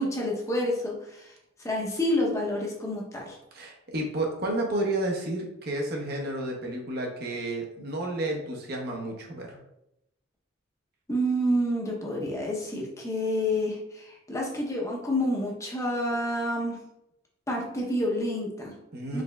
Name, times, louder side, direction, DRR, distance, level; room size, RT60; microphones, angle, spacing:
voice 1, 0.0-1.3 1.6-3.4 11.1-16.8 17.5-18.7 19.1-19.2, equal, 15° left, -2 dB, 0.7 m, -28 dB
voice 2, 3.5-9.6 18.9-19.2, right 1 dB, 55° right, 0 dB, 0.8 m, -31 dB
4.8 x 3.3 x 2.3 m, 0.82 s
head